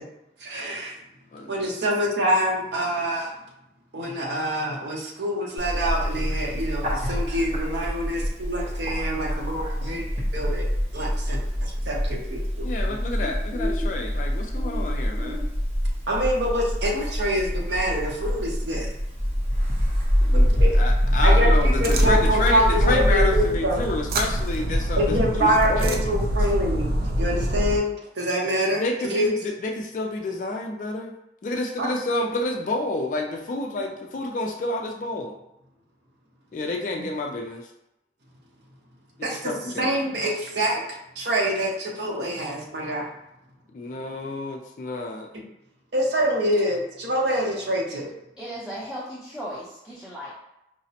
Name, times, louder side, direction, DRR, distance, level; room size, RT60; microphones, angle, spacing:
voice 1, 0.4-0.9 1.5-3.3 3.9-10.1 10.3-10.7 10.9-12.7 16.1-18.9 20.3-20.8 21.2-23.8 25.0-26.9 27.2-29.3 31.8-31.9 39.2-39.5 39.8-40.8 41.2-43.1 45.9-48.1, equal, 75° right, -2 dB, 0.8 m, -25 dB
voice 2, 1.3-1.9 12.6-15.5 20.2-20.5 20.7-26.0 28.6-31.1 31.4-35.3 36.5-37.7 39.2-40.0 43.7-45.3, left 2 dB, 45° left, 2 dB, 0.3 m, -29 dB
Bird, 5.6-23.5, equal, 35° right, 0.8 m, -24 dB
sound 1, 21.8-27.8, equal, 55° right, 0.4 m, -25 dB
voice 3, 48.4-50.3, equal, 5° right, -8 dB, 0.6 m, -36 dB
4.8 x 2.0 x 2.7 m, 0.86 s
head